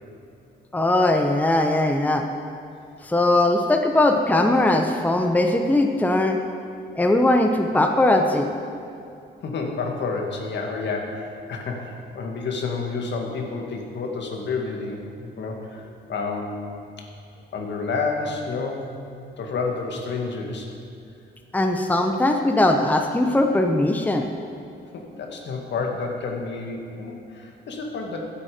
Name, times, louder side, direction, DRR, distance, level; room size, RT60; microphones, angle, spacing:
voice 1, 0.7-2.2 3.0-6.4 7.0-8.5 21.5-24.3, left 1 dB, 10° left, 4 dB, 0.9 m, -20 dB
voice 2, 9.4-17.0 17.5-19.0 19.4-20.7 24.9-28.3, left 4 dB, 65° left, 1 dB, 2.1 m, -30 dB
15.5 x 8.7 x 5.2 m, 2.5 s
cardioid pair, 90°, 20 cm